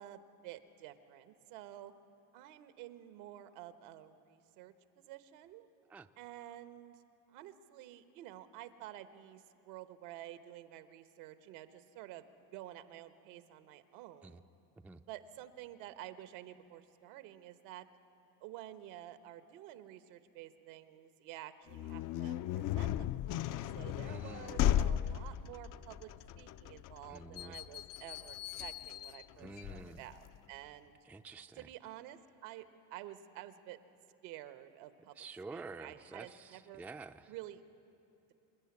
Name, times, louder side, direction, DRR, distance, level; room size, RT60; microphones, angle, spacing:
voice 1, 0.0-1.9 2.3-5.7 6.2-7.0 7.3-12.2 12.5-14.4 15.1-17.9 18.4-26.1 26.4-31.0 31.6-33.8 34.2-35.1 35.5-36.8 37.3-37.6, right 13 dB, 80° right, 11 dB, 1.2 m, -50 dB
sound 1, 21.7-30.4, left 11 dB, 50° left, 0.5 m, -36 dB
voice 2, 24.0-24.6 27.1-27.6 29.4-30.0 31.0-31.7 35.2-37.3, right 3 dB, 5° right, 8 dB, 0.4 m, -49 dB
26.0 x 10.5 x 9.6 m, 3.0 s
supercardioid pair, 95°, 43 cm